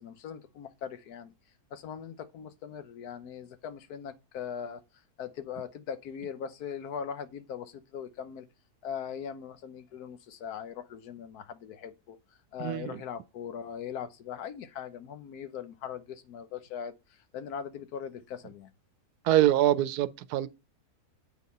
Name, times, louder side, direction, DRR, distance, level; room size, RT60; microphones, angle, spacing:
voice 1, 0.0-1.3 1.7-4.8 5.2-8.5 8.8-12.2 12.5-18.7, left 7 dB, 75° left, 1.3 m, -40 dB
voice 2, 12.6-12.9 19.2-20.5, right 13 dB, 80° right, 1.1 m, -24 dB
8.2 x 4.0 x 5.3 m
omnidirectional pair, 1.7 m